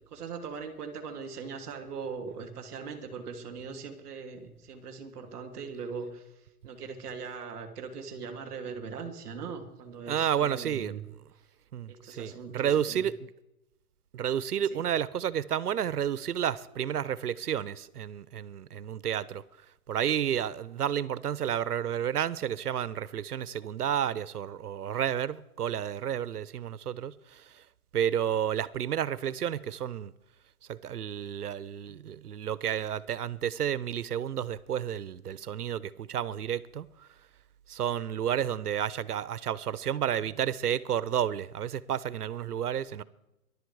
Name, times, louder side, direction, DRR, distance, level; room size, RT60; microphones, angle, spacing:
voice 1, 0.0-11.0 11.9-13.0 14.6-14.8, right 5 dB, 5° right, 0.7 m, -40 dB
voice 2, 10.1-11.0 11.7-13.3 14.1-19.4 19.9-27.6 27.9-30.1 30.7-37.1 37.7-43.0, right 9 dB, 85° right, 1.0 m, -31 dB
22.5 x 11.5 x 4.9 m
hypercardioid pair, 175°, 45 cm